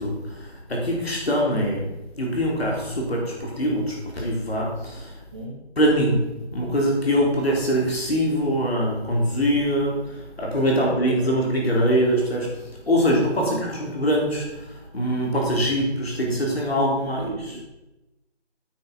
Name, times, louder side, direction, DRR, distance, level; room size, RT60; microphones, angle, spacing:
voice 1, 0.0-1.8 2.2-5.1 5.8-17.6, equal, 60° left, -2 dB, 4.1 m, -23 dB
voice 2, 10.8-11.3 13.4-13.6 17.2-17.7, right 2 dB, 25° right, -1 dB, 1.6 m, -36 dB
9.3 x 7.1 x 6.1 m, 0.99 s
figure-of-eight pair, 165°, 34 cm